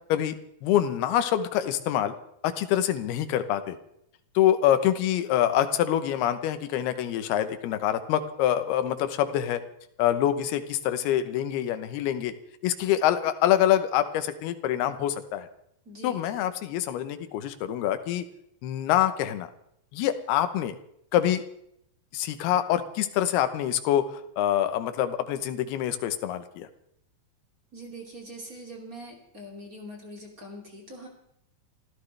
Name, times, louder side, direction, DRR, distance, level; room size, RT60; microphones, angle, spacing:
voice 1, 0.6-2.1 2.4-3.8 4.4-9.6 10.0-12.3 12.6-15.5 16.0-18.2 18.6-19.5 19.9-20.8 21.1-21.4 22.1-26.7, left 11 dB, 85° left, 10 dB, 2.9 m, -25 dB
voice 2, 15.8-16.5 27.7-31.1, equal, 25° right, 0 dB, 2.6 m, -43 dB
28.0 x 14.0 x 3.3 m, 0.74 s
omnidirectional pair, 4.4 m